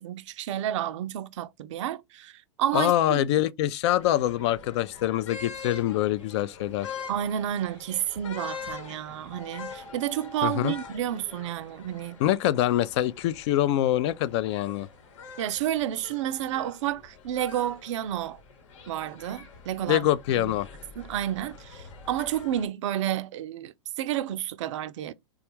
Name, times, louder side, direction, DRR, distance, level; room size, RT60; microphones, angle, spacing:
voice 1, 0.0-3.2 7.1-12.2 15.4-18.4 18.9-20.1 20.4-20.5 21.0-25.1, right 11 dB, 70° right, 0.4 m, -30 dB
voice 2, 2.7-6.9 10.4-10.7 12.2-14.9 19.9-20.7, left 13 dB, 60° left, 0.4 m, -25 dB
sound 1, 4.0-22.7, left 6 dB, 80° left, 1.0 m, -45 dB
sound 2, 9.3-10.9, left 1 dB, 10° left, 0.7 m, -47 dB
3.4 x 2.3 x 2.9 m
hypercardioid pair, 120°, 16 cm